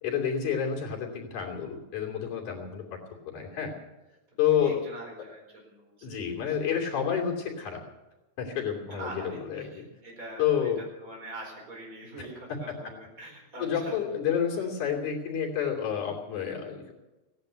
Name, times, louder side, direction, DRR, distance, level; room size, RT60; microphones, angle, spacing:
voice 1, 0.0-2.8 3.3-3.7 4.4-4.8 6.0-7.8 8.4-9.8 10.4-10.8 13.6-16.9, left 8 dB, 80° left, 0 dB, 4.3 m, -29 dB
voice 2, 4.5-6.6 8.9-14.0 14.6-14.7, right 1 dB, 25° right, -1 dB, 4.8 m, -44 dB
16.5 x 10.5 x 8.1 m, 1.1 s
omnidirectional pair, 3.5 m